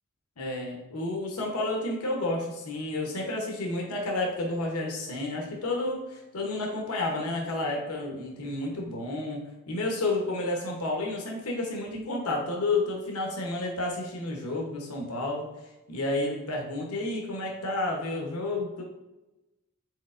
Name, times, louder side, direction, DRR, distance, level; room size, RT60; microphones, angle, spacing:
voice 1, 0.4-15.5 15.9-18.8, left 2 dB, 90° left, 0 dB, 0.9 m, -31 dB
4.6 x 4.0 x 2.5 m, 1.0 s
head